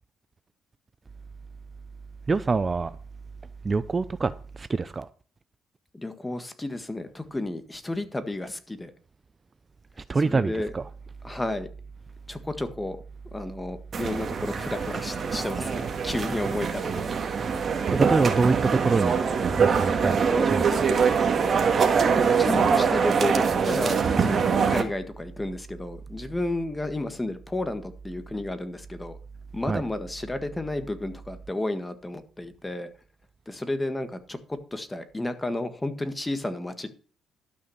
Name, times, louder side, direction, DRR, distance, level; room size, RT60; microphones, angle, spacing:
voice 1, 2.3-3.0 3.6-5.1 10.1-10.9 16.1-16.3 17.3-17.5 17.9-19.2 19.6-20.9 29.6-29.8, right 4 dB, 30° right, 0.5 m, -26 dB
voice 2, 5.9-8.9 10.1-10.7 11.2-11.7 12.3-13.0 13.3-16.8 17.1-17.2 20.3-20.5 22.1-29.2 29.5-32.9 33.5-36.9, left 2 dB, 15° left, 1.6 m, -32 dB
sound 1, 13.9-24.8, right 6 dB, 45° right, 2.0 m, -24 dB
12.5 x 5.8 x 6.4 m
cardioid pair, 90°, 0 cm